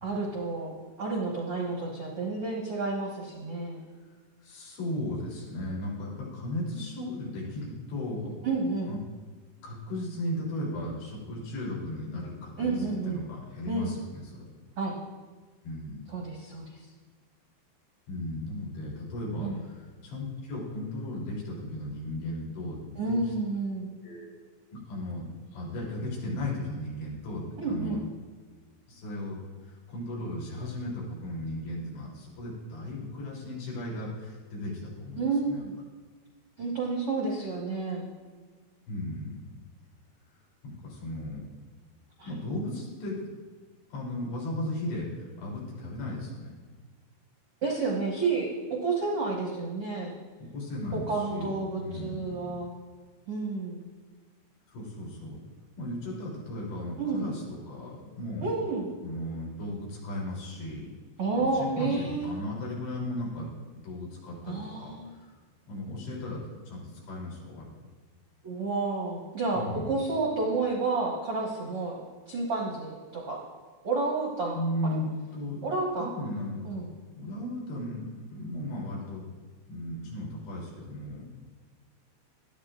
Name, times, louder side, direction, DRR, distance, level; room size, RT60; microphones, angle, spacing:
voice 1, 0.0-3.8 8.4-8.9 12.6-13.2 13.7-13.9 14.8-14.9 16.1-16.6 19.4-19.6 23.0-23.9 27.6-28.0 35.2-35.7 36.6-38.1 42.2-42.3 47.6-50.1 50.9-52.7 53.3-53.8 57.0-57.3 58.4-58.9 61.2-62.4 64.4-65.1 68.4-72.0 72.3-73.4 73.8-74.6 74.8-75.0 75.6-76.1 76.6-76.9, right 3 dB, 65° right, -3 dB, 1.4 m, -30 dB
voice 2, 4.4-8.3 8.9-9.0 9.6-14.5 15.6-16.1 18.1-23.3 24.0-24.3 24.7-28.0 28.9-35.6 38.9-39.4 40.6-41.5 42.2-43.3 43.9-46.5 50.4-52.6 54.7-55.4 55.8-58.5 59.0-60.9 61.3-65.3 65.7-67.7 69.6-69.9 74.5-75.6 76.0-76.6 77.2-79.2 79.7-81.3, left 1 dB, 75° left, -4 dB, 5.6 m, -36 dB
18.5 x 13.0 x 2.5 m, 1.4 s
omnidirectional pair, 5.1 m